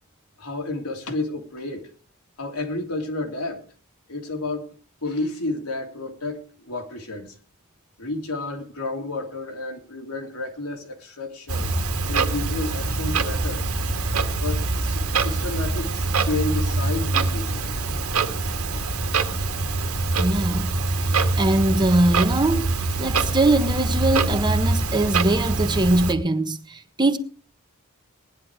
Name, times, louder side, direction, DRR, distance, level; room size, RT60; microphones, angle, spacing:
voice 1, 0.4-1.9 2.4-3.6 4.1-4.7 5.0-7.3 8.0-11.7 12.1-13.7 14.4-17.7, left 2 dB, 85° left, 3.1 m, -31 dB
Clock, 11.5-26.1, right 3 dB, 75° right, 1.8 m, -24 dB
voice 2, 20.2-20.7 21.0-22.7 23.0-27.2, right 2 dB, 20° right, 1.4 m, -22 dB
18.5 x 11.0 x 4.7 m
head